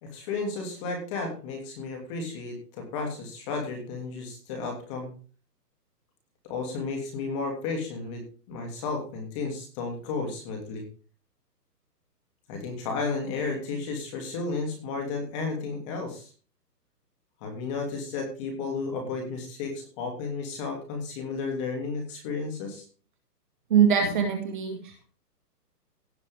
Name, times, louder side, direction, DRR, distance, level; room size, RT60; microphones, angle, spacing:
voice 1, 0.0-5.1 6.4-10.8 12.5-16.3 17.4-22.8, left 4 dB, 20° left, 2 dB, 2.6 m, -33 dB
voice 2, 23.7-25.0, right 7 dB, 30° right, 3 dB, 2.0 m, -23 dB
17.0 x 6.5 x 3.5 m, 0.37 s
hypercardioid pair, 170°, 49 cm